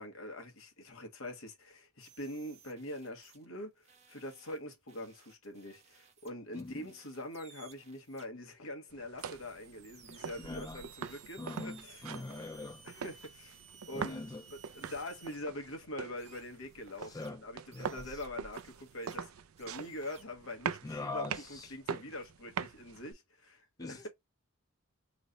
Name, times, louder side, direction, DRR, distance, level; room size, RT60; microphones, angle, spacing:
voice 1, 0.0-12.1 12.8-14.2 14.7-19.3 19.6-21.2 21.5-24.1, left 1 dB, 65° left, 1.3 m, -44 dB
sound 1, 2.0-3.4 3.8-8.2 9.2-15.4 16.2-17.3 17.7-19.2 19.6-20.2, right 6 dB, 30° right, 0.8 m, -59 dB
voice 2, 6.5-6.9 10.4-10.8 11.4-12.9 13.9-14.4 17.0-17.4 17.7-18.2 20.8-21.8 23.8-24.1, left 2 dB, 15° left, 0.3 m, -43 dB
sound 2, 8.9-23.1, right 7 dB, 70° right, 0.4 m, -43 dB
3.2 x 2.0 x 3.9 m
head